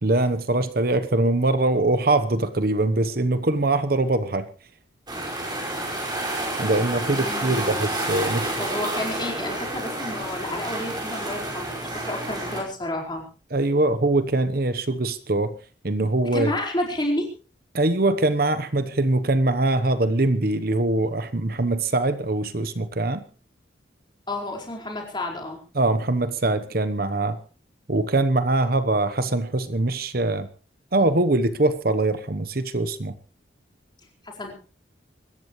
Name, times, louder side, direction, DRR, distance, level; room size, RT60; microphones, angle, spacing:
voice 1, 0.0-4.5 6.6-8.5 13.5-15.6 15.8-16.5 17.7-23.3 25.7-27.4 27.9-30.5 30.9-33.1, right 2 dB, 50° right, 1.0 m, -22 dB
sound 1, 5.1-12.6, right 1 dB, 20° right, 5.3 m, -29 dB
voice 2, 6.9-7.9 8.6-13.2 16.3-17.3 24.3-25.6 34.2-34.5, left 1 dB, 25° left, 4.7 m, -30 dB
25.5 x 14.0 x 3.2 m
head